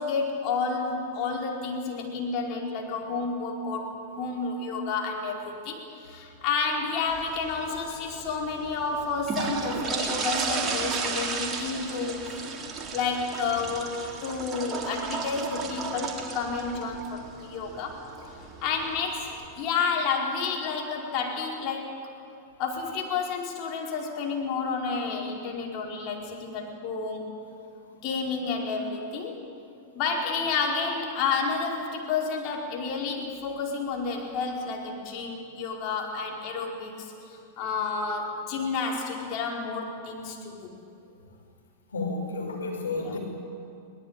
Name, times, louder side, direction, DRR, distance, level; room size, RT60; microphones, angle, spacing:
voice 1, 0.0-12.5 12.9-18.0 18.6-19.3 19.6-21.9 22.6-27.3 28.0-29.4 29.9-40.7 43.0-43.2, left 4 dB, 45° left, 0 dB, 4.8 m, -30 dB
sound 1, 7.1-19.4, right 5 dB, 25° right, 3.9 m, -34 dB
voice 2, 41.9-43.2, left 3 dB, 85° left, 2 dB, 5.6 m, -31 dB
22.5 x 19.0 x 9.0 m, 2.5 s
hypercardioid pair, 100°, 0 cm